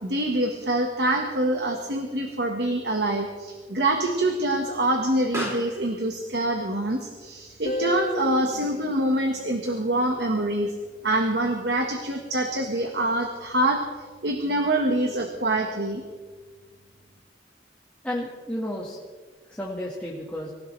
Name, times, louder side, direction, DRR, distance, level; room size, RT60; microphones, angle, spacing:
voice 1, 0.0-10.7 11.0-13.8 14.2-16.0, right 1 dB, 65° right, 3 dB, 1.6 m, -25 dB
Explosion, 4.9-10.1, equal, 15° right, 3.3 m, -43 dB
Guitar, 7.6-10.6, left 2 dB, 45° left, 1.2 m, -34 dB
voice 2, 18.0-19.0 19.5-20.5, left 1 dB, 10° left, -5 dB, 1.8 m, -32 dB
25.5 x 16.0 x 3.4 m, 1.4 s
head